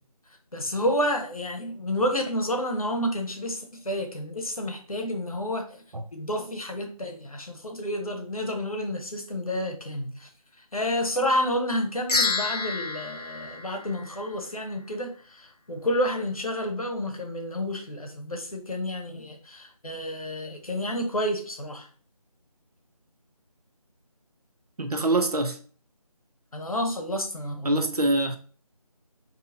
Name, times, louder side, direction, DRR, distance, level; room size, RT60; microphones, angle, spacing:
voice 1, 0.5-5.8 6.1-10.3 10.7-21.9 26.5-27.8, left 1 dB, 65° left, 1.0 m, -30 dB
sound 1, 12.1-14.6, left 3 dB, 90° left, 0.7 m, -29 dB
voice 2, 24.8-25.6 27.6-28.4, right 2 dB, 75° right, 0.6 m, -24 dB
3.8 x 2.8 x 2.8 m
figure-of-eight pair, 165°, 20 cm